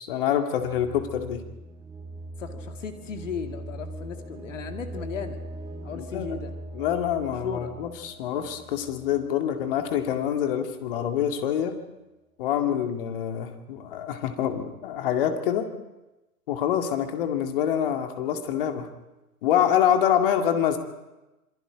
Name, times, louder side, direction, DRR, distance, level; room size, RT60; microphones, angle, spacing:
voice 1, 0.0-1.4 5.9-6.4 6.7-11.7 12.4-15.7 16.5-18.9 19.4-20.8, left 9 dB, 35° left, 6 dB, 2.2 m, -26 dB
sound 1, 0.6-10.4, right 2 dB, 10° right, 1.8 m, -41 dB
voice 2, 2.4-5.4 5.8-6.5 7.2-7.8 12.6-12.9, left 6 dB, 55° left, 6 dB, 2.3 m, -36 dB
27.0 x 22.5 x 5.0 m, 1.0 s
figure-of-eight pair, 120°, 45 cm